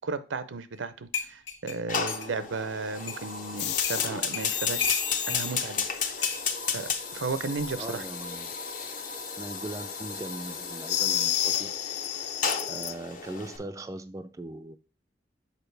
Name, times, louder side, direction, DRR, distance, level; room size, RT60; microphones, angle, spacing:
voice 1, 0.0-4.9 5.3-6.4 6.7-8.0, right 4 dB, 80° right, 0.6 m, -34 dB
sound 1, 0.8-0.9 1.1-2.3 3.1-3.2 3.8-4.0 4.3-5.4 6.2-6.4 7.6-7.8, left 6 dB, 90° left, 1.5 m, -33 dB
Fire, 1.9-13.6, left 5 dB, 45° left, 0.9 m, -34 dB
sound 2, 3.6-4.1 4.4-5.6 10.9-12.9, left 11 dB, 60° left, 0.4 m, -30 dB
voice 2, 7.7-8.5 9.4-11.7 12.7-14.8, right 2 dB, 20° right, 0.3 m, -39 dB
6.8 x 5.0 x 3.3 m
head